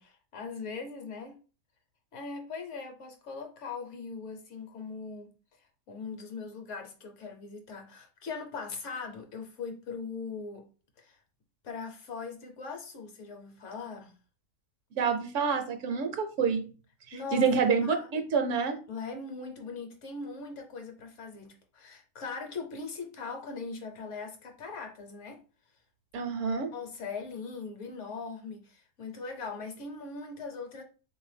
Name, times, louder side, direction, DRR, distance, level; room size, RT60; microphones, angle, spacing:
voice 1, 0.0-1.4 2.1-5.3 5.6-10.7 11.0-11.2 11.6-14.1 17.1-18.2 18.9-25.4 26.7-30.8, left 4 dB, 65° left, 1.0 m, -40 dB
voice 2, 14.9-16.7 17.1-18.8 26.1-26.7, right 5 dB, 65° right, 0.9 m, -28 dB
3.6 x 2.6 x 3.2 m
omnidirectional pair, 1.5 m